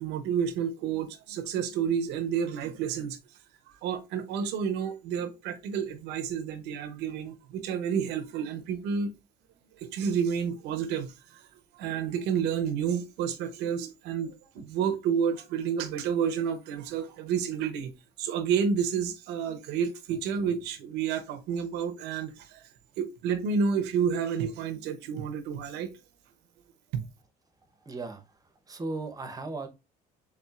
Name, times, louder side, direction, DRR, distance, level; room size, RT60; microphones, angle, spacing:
voice 1, 0.0-3.2 3.8-9.1 9.8-11.4 11.7-22.6 23.0-25.9 26.9-27.0, right 7 dB, 90° right, 0.7 m, -30 dB
voice 2, 27.8-28.2 28.7-29.7, right 3 dB, 20° right, 0.8 m, -36 dB
4.3 x 3.5 x 2.4 m
cardioid pair, 110°, 17 cm